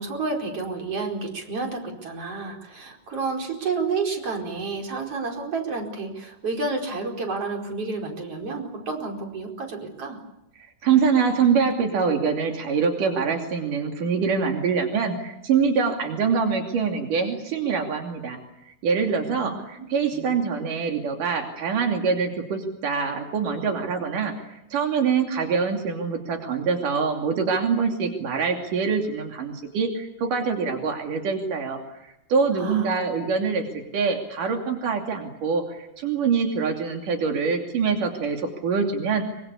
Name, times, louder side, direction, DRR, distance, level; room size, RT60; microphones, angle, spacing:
voice 1, 0.0-10.2 19.3-19.5 19.8-19.9 20.1-20.3 32.5-32.9, right 4 dB, 45° right, 1 dB, 5.6 m, -30 dB
voice 2, 10.8-18.4 18.7-24.3 24.7-39.2, right 5 dB, 85° right, 3 dB, 4.4 m, -24 dB
25.5 x 24.5 x 8.5 m, 0.84 s
omnidirectional pair, 3.6 m